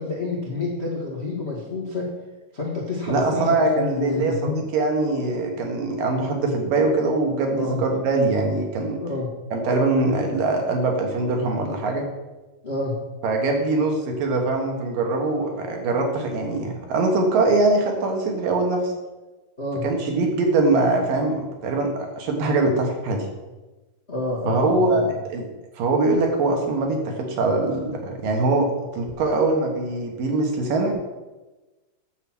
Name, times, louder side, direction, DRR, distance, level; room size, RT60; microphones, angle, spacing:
voice 1, 0.0-2.1 2.5-4.6 7.5-7.8 9.0-9.3 12.6-12.9 19.6-19.8 24.1-25.1, left 2 dB, 50° left, -3 dB, 0.7 m, -28 dB
voice 2, 3.1-9.0 9.5-12.0 13.2-18.9 19.8-23.3 24.5-25.0 25.3-25.4 25.8-28.7 28.9-30.9, right 3 dB, 65° right, 2 dB, 3.0 m, -22 dB
9.8 x 7.5 x 6.2 m, 1.1 s
omnidirectional pair, 4.5 m